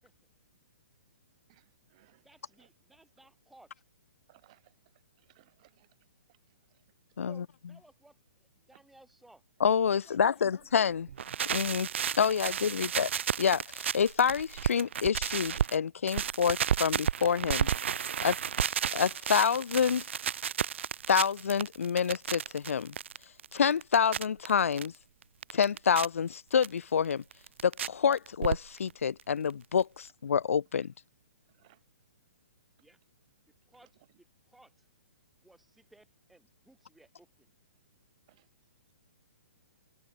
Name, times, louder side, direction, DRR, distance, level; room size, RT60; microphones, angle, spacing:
voice 1, 1.5-2.3 2.5-2.7 4.3-4.7 5.2-5.9 6.3-6.4 6.7-6.8 8.7-8.8 30.7-30.9 31.4-31.8 38.3-38.5, right 18 dB, 30° right, 5.1 m, -64 dB
voice 2, 2.2-3.7 7.2-9.5 9.9-11.2 32.8-33.0 33.7-34.9 35.4-37.5, right 1 dB, ahead, 7.7 m, -61 dB
voice 3, 9.6-11.1 11.5-11.9 12.2-13.1 13.4-17.7 18.2-18.4 18.9-20.0 21.1-22.9 23.5-24.9 25.5-27.2 27.6-30.9, left 7 dB, 90° left, 0.7 m, -27 dB
sound 1, 11.1-15.8 16.1-24.9 25.2-26.1 26.6-26.7 27.1-27.9 28.1-28.9 29.2-29.3 29.5-29.6 29.8-29.9, right 8 dB, 60° right, 0.5 m, -32 dB
hypercardioid pair, 170°, 7 cm